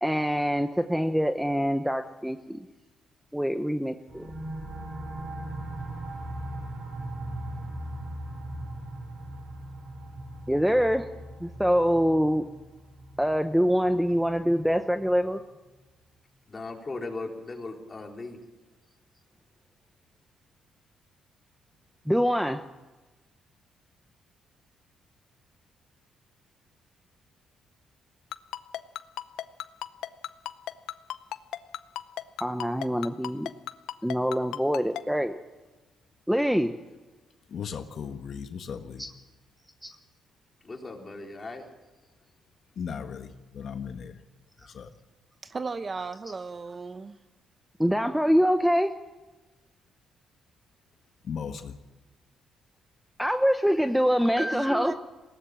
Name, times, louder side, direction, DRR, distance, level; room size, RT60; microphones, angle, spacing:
voice 1, 0.0-2.7 3.3-4.3 10.5-11.1 11.4-12.5 13.2-15.4 22.1-22.6 32.4-33.5 34.0-35.4 36.3-36.7 39.0-39.1 46.3-46.4 47.8-48.9 53.2-54.9, equal, ahead, 0.9 m, -25 dB
sound 1, 4.1-15.4, right 1 dB, 60° right, 5.2 m, -39 dB
voice 2, 16.5-18.4 40.6-41.6, left 3 dB, 25° left, 4.3 m, -38 dB
Ringtone, 28.3-35.0, left 12 dB, 85° left, 0.7 m, -34 dB
voice 3, 37.5-39.1 42.7-44.2 44.7-44.9 51.2-51.8, left 7 dB, 60° left, 1.5 m, -37 dB
voice 4, 45.4-47.2 54.4-54.9, right 4 dB, 35° right, 0.9 m, -35 dB
20.5 x 17.5 x 7.6 m
cardioid pair, 90°, 0 cm